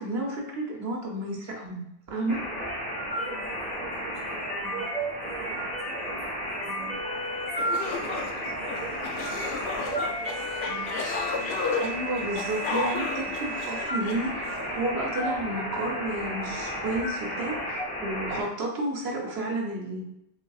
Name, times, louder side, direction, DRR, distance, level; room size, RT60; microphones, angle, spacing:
voice 1, 0.0-2.4 11.8-20.0, right 2 dB, 80° right, 0 dB, 1.1 m, -31 dB
sound 1, 2.3-18.4, equal, 10° left, 1.2 m, -32 dB
voice 2, 3.1-10.9, right 4 dB, 45° right, -4 dB, 1.3 m, -43 dB
coughing-group, 7.2-7.3 7.6-14.7, left 5 dB, 80° left, 0.8 m, -33 dB
5.2 x 2.7 x 2.3 m, 0.83 s
omnidirectional pair, 1.0 m